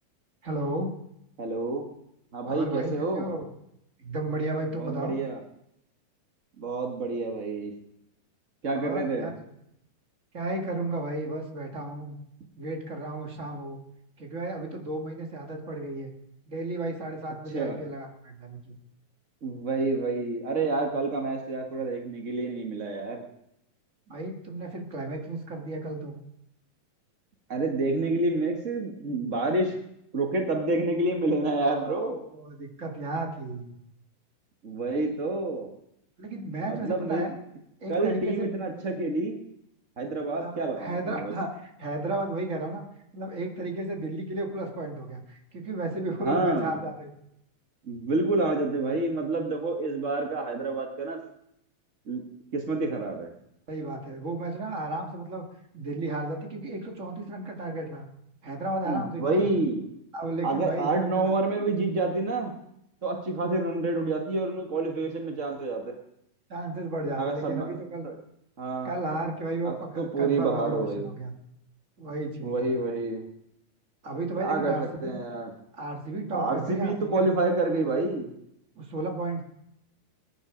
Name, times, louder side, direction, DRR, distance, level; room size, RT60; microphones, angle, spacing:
voice 1, 0.4-0.9 2.5-3.5 4.0-5.2 8.7-9.3 10.3-12.2 12.5-13.8 14.2-16.1 16.5-18.7 24.1-26.2 31.6-33.7 36.2-37.3 37.8-38.5 40.3-42.8 43.1-47.1 53.7-55.4 55.7-58.1 58.4-59.5 60.1-61.3 66.5-68.1 68.8-71.3 72.0-72.7 74.0-75.2 75.7-77.2 78.7-79.4, right 2 dB, 30° right, 2 dB, 1.7 m, -33 dB
voice 2, 1.4-1.9 2.3-3.2 4.8-5.4 6.6-7.7 8.6-9.3 17.5-17.8 19.4-23.2 27.5-29.8 30.1-32.2 34.6-35.7 36.6-37.3 37.9-39.4 40.0-41.3 46.2-46.8 47.9-51.2 52.1-52.2 52.5-53.3 58.8-59.9 60.4-62.5 63.0-66.0 67.2-67.7 68.0-68.1 68.6-68.9 69.6-71.1 72.4-73.3 74.3-75.5 76.3-78.3, right 2 dB, 70° right, 2 dB, 0.7 m, -28 dB
22.0 x 10.5 x 5.1 m, 0.78 s
omnidirectional pair, 4.3 m